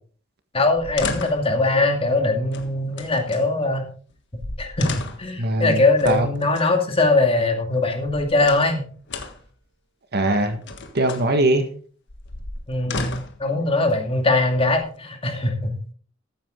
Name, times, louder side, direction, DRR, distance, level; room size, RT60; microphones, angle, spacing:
voice 1, 0.5-3.9 4.3-4.9 5.2-8.9 12.7-15.7, left 2 dB, 30° left, 3 dB, 2.3 m, -21 dB
sound 1, 0.7-1.5 2.5-3.4 4.1-4.2 4.4-5.4 6.0-6.7 7.8-8.8 9.1-9.5 10.4-11.3 12.1-13.4 14.3-15.0, left 3 dB, 60° left, 1.5 m, -34 dB
voice 2, 5.4-6.3 10.1-10.6 10.9-11.7, right 2 dB, 55° right, 7 dB, 1.6 m, -21 dB
14.0 x 8.8 x 3.8 m, 0.43 s
head